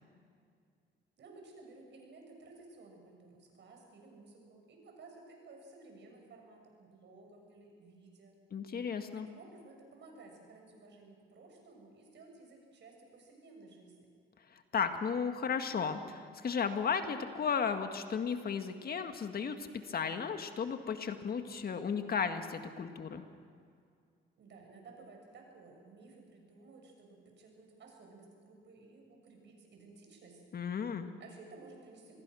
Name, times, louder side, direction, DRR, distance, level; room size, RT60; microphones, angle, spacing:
voice 1, 1.2-8.4 9.1-14.0 24.4-30.4 31.2-32.2, right 3 dB, 65° right, 2 dB, 6.7 m, -55 dB
voice 2, 8.5-9.3 14.7-23.2 30.5-31.1, left 6 dB, 50° left, 7 dB, 1.7 m, -34 dB
26.5 x 20.5 x 6.3 m, 2.2 s
cardioid pair, 90°, 20 cm